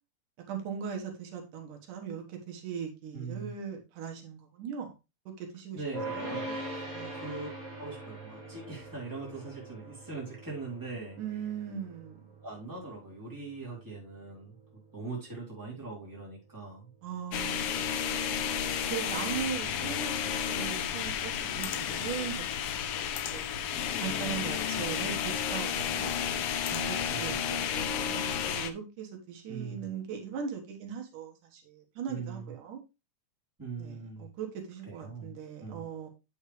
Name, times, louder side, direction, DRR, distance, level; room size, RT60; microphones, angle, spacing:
voice 1, 0.5-4.9 5.4-5.8 6.1-6.4 6.9-7.2 11.2-12.2 17.0-18.0 18.6-23.5 24.0-26.1 26.7-32.8 33.8-36.1, right 7 dB, 85° right, 2 dB, 3.0 m, -39 dB
voice 2, 3.1-3.5 5.7-6.6 7.1-7.5 7.8-11.2 12.4-14.6 14.9-16.9 27.1-27.3 29.5-29.9 32.1-32.5 33.6-34.3 34.9-35.9, right 3 dB, 5° right, -4 dB, 3.3 m, -41 dB
sound 1, 5.9-17.2, right 1 dB, 25° right, 3.4 m, -43 dB
sound 2, 17.3-28.7, left 8 dB, 90° left, 1.2 m, -32 dB
8.6 x 6.4 x 3.2 m, 0.26 s
omnidirectional pair, 3.5 m